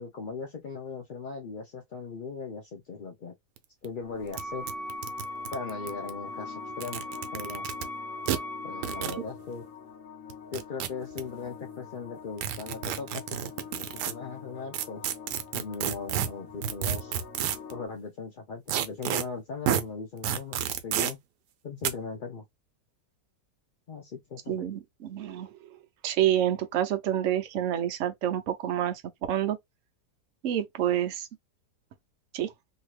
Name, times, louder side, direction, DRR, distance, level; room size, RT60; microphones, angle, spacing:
voice 1, 0.0-3.3 3.8-4.7 5.5-7.0 7.3-7.7 8.6-9.6 10.5-15.1 15.5-17.2 17.7-21.2 21.6-22.4 23.9-24.7, left 4 dB, 80° left, 0.4 m, -39 dB
sound 1, 3.6-3.7 3.8-3.9 4.3-4.4 4.7-6.1 6.7-7.8 8.3-8.4 8.8-9.2 10.3-11.2 12.4-14.1 14.7-17.7 18.7-19.2 19.7-19.8 20.2-21.1 21.8-21.9, right 10 dB, 85° right, 1.2 m, -30 dB
sound 2, 4.0-17.9, left 7 dB, 60° left, 1.0 m, -46 dB
Wind instrument woodwind instrument, 4.3-9.2, left 1 dB, 25° right, 0.8 m, -39 dB
voice 2, 24.5-29.0 29.3-29.6 30.4-31.3 32.3-32.5, right 11 dB, 60° right, 0.8 m, -28 dB
2.8 x 2.8 x 3.1 m
omnidirectional pair, 1.8 m